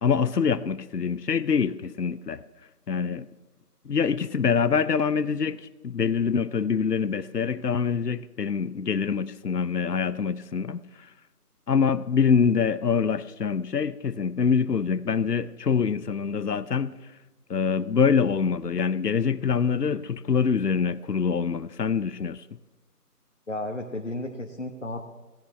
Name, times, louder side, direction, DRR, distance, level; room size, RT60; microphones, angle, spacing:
voice 1, 0.0-2.4 2.9-3.3 3.8-10.8 11.7-16.9 17.5-22.4, left 6 dB, 80° left, 0.7 m, -25 dB
voice 2, 23.5-25.1, left 1 dB, 50° left, 1.1 m, -33 dB
17.0 x 16.0 x 3.2 m
figure-of-eight pair, 175°, 47 cm